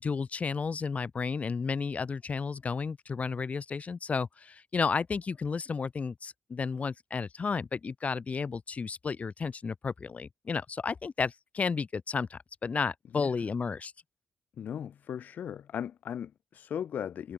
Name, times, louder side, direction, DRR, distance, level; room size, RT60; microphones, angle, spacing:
voice 1, 0.0-13.9, left 5 dB, 45° left, 1.6 m, -32 dB
voice 2, 14.6-17.3, left 9 dB, 65° left, 0.5 m, -37 dB
hypercardioid pair, 40°, 3 cm